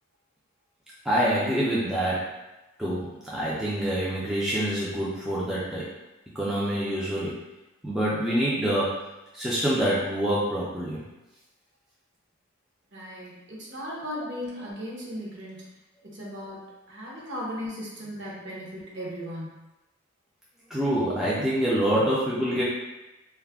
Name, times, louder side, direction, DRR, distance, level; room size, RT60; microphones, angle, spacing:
voice 1, 1.0-2.3 2.8-5.9 6.3-7.4 7.8-9.0 9.3-11.0 20.7-22.6, right 1 dB, ahead, -9 dB, 0.4 m, -26 dB
voice 2, 12.9-15.8 16.0-19.5, equal, 55° right, -5 dB, 0.7 m, -37 dB
2.3 x 2.1 x 3.3 m, 1.0 s
head